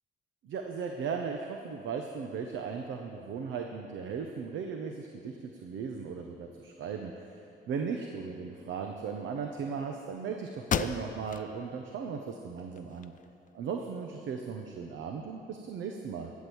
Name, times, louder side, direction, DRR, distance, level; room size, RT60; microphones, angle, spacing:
voice 1, 0.4-13.1 13.5-16.3, right 6 dB, 75° right, 3 dB, 1.0 m, -37 dB
sound 1, 10.1-10.2 10.6-11.5 12.0-12.1 12.6-13.5, left 7 dB, 40° left, 0.5 m, -34 dB
13.0 x 7.4 x 8.0 m, 2.7 s
cardioid pair, 90°, 20 cm